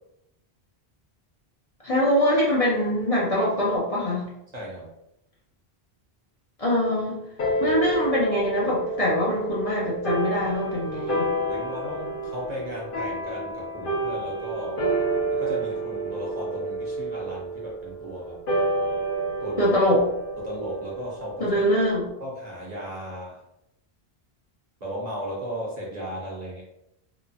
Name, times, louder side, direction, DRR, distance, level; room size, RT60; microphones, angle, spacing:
voice 1, 1.8-4.2 6.6-7.2 7.6-11.3 19.6-20.0 21.4-22.1, left 1 dB, 40° left, -6 dB, 0.7 m, -23 dB
voice 2, 4.5-4.9 11.5-14.9 15.3-18.4 19.4-19.7 20.4-21.5 22.2-23.4 24.8-26.6, equal, 45° right, -4 dB, 0.8 m, -35 dB
sound 1, 7.4-22.1, right 2 dB, 60° left, 1.0 m, -29 dB
2.9 x 2.3 x 2.6 m, 0.80 s
omnidirectional pair, 1.0 m